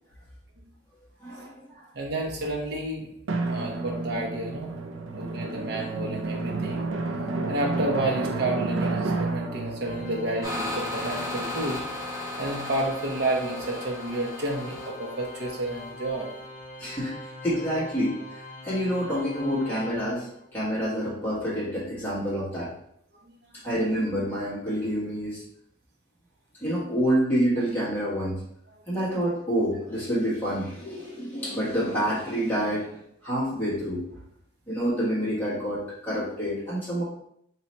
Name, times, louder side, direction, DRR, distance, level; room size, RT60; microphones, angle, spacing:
voice 1, 1.2-1.8 16.8-18.2 18.6-22.7 23.6-25.4 26.6-28.4 28.9-34.0 34.7-37.0, equal, 10° left, -9 dB, 1.3 m, -28 dB
voice 2, 1.9-3.1 3.5-4.8 5.1-6.9 7.5-11.8 12.4-16.3 23.2-23.6, right 1 dB, 55° right, -1 dB, 0.8 m, -30 dB
Drum, 3.3-11.6, right 3 dB, 80° right, 0.4 m, -31 dB
Organ, 9.8-20.6, left 1 dB, 35° left, 0.9 m, -42 dB
sound 1, 10.4-15.9, left 1 dB, 15° right, 0.7 m, -35 dB
3.1 x 2.9 x 4.2 m, 0.71 s
head